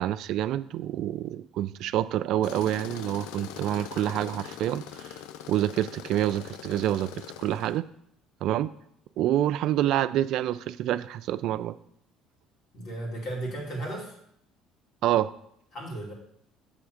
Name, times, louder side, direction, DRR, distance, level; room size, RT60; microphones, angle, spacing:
voice 1, 0.0-5.1 5.5-7.1 7.4-7.8 8.4-8.7 9.2-11.7 15.0-15.3, right 12 dB, 65° right, 14 dB, 0.3 m, -27 dB
Tools, 2.4-7.8, left 10 dB, 80° left, 0.4 m, -42 dB
voice 2, 12.7-14.1 15.7-16.1, right 1 dB, 60° left, -2 dB, 2.6 m, -35 dB
7.5 x 3.3 x 6.4 m, 0.71 s
supercardioid pair, 85°, 0 cm